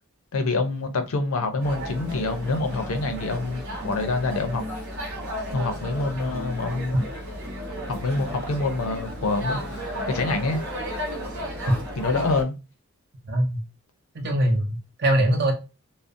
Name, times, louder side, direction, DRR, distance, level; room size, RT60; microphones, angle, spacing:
voice 1, 0.3-4.6 5.5-7.0 7.9-10.6 12.0-12.5, left 3 dB, 75° left, 0.5 m, -26 dB
sound 1, 1.6-12.4, equal, 70° right, 0.9 m, -33 dB
voice 2, 13.2-13.6 14.1-15.5, right 1 dB, 50° right, 0.6 m, -22 dB
2.4 x 2.0 x 2.5 m
head